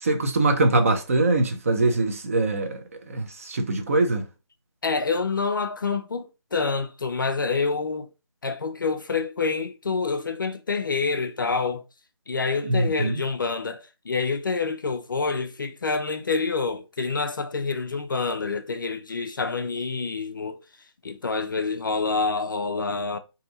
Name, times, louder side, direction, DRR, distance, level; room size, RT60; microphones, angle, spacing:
voice 1, 0.0-2.8 3.1-4.3 12.6-13.2, right 2 dB, 30° right, 0.5 m, -23 dB
voice 2, 4.8-8.1 8.4-11.8 12.3-20.6 21.0-23.2, left 4 dB, 45° left, 0.4 m, -27 dB
2.7 x 2.6 x 3.9 m
figure-of-eight pair, 160°, 15 cm